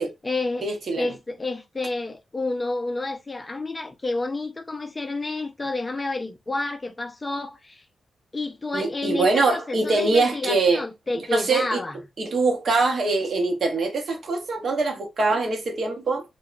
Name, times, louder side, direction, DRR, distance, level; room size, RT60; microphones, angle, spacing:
voice 1, 0.0-0.7 0.9-7.8 8.3-12.0, left 2 dB, 20° left, 0.3 m, -30 dB
voice 2, 0.6-1.1 8.7-10.8 11.3-11.8 12.2-16.2, right 3 dB, 55° right, 0.7 m, -23 dB
2.9 x 2.0 x 2.4 m
wide cardioid pair, 130°, 0 cm